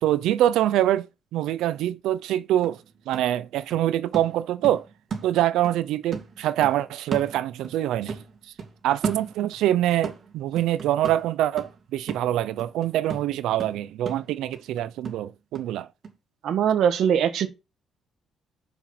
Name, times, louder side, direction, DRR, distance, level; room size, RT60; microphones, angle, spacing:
voice 1, 0.0-4.9 5.2-8.2 8.4-8.5 8.8-15.9, right 13 dB, 90° right, 0.6 m, -25 dB
sound 1, 2.2-2.3 2.6-5.8 6.1-7.8 8.1-9.7 10.0-15.7 16.0-16.1, right 5 dB, 45° right, 2.6 m, -36 dB
voice 2, 16.4-17.5, right 8 dB, 70° right, 1.5 m, -21 dB
7.0 x 6.3 x 5.9 m
cardioid pair, 125°, 0 cm